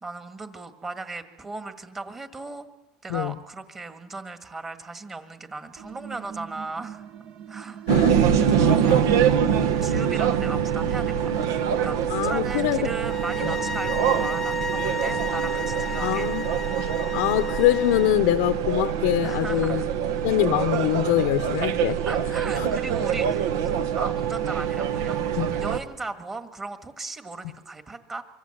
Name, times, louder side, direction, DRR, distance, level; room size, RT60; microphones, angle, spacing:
voice 1, 0.0-2.7 3.0-7.0 7.5-7.8 8.3-16.3 19.2-20.0 22.1-28.2, right 3 dB, 15° right, 1.8 m, -37 dB
sound 1, 5.8-14.3, right 9 dB, 40° right, 1.0 m, -42 dB
voice 2, 7.9-9.0 9.5-9.6 12.1-12.9 16.0-16.5 17.1-19.8 20.2-22.0 22.6-22.7 25.4-25.5, left 15 dB, 75° left, 0.8 m, -24 dB
sound 2, 7.9-25.8, right 8 dB, 85° right, 1.4 m, -24 dB
sound 3, 13.0-18.2, left 3 dB, 10° left, 0.8 m, -33 dB
25.0 x 24.5 x 8.0 m
supercardioid pair, 145°, 2 cm